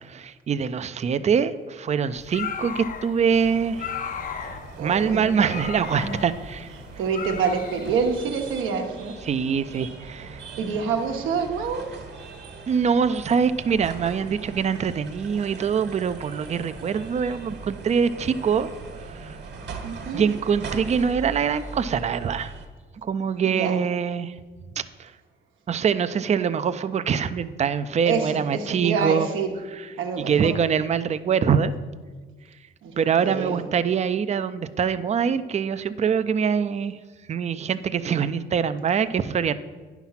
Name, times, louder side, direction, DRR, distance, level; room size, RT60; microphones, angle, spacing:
voice 1, 0.0-3.9 4.8-6.7 9.3-10.4 12.7-18.7 19.1-19.4 20.1-22.5 23.0-24.3 24.8-25.1 25.7-29.3 30.2-31.7 33.0-36.9 37.3-39.5, right 7 dB, 35° right, 13 dB, 0.4 m, -24 dB
sound 1, 2.2-8.2, left 7 dB, 45° left, 0.6 m, -36 dB
sound 2, 3.3-22.7, right 4 dB, 55° right, 1.5 m, -40 dB
voice 2, 4.8-5.6 5.9-6.2 7.0-9.2 10.6-11.9 19.8-20.3 23.4-23.8 28.1-29.5 30.0-30.5 32.8-33.6, right 5 dB, 85° right, 3 dB, 1.1 m, -27 dB
9.9 x 5.9 x 5.7 m, 1.4 s
cardioid pair, 90°, 20 cm